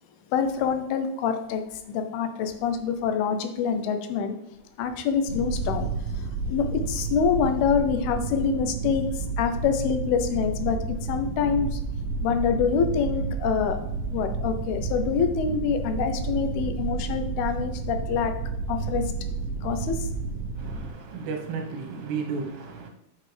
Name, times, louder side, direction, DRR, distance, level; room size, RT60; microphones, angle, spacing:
voice 1, 0.3-4.4 4.8-5.9 6.1-11.8 12.2-13.8 14.1-18.3 18.7-19.1 19.6-20.1, left 6 dB, 80° left, 7 dB, 2.6 m, -26 dB
sound 1, 5.3-20.9, right 3 dB, 55° right, 2.6 m, -31 dB
voice 2, 20.6-22.9, right 5 dB, 85° right, 2 dB, 3.3 m, -33 dB
7.6 x 6.5 x 3.3 m, 0.79 s
omnidirectional pair, 4.6 m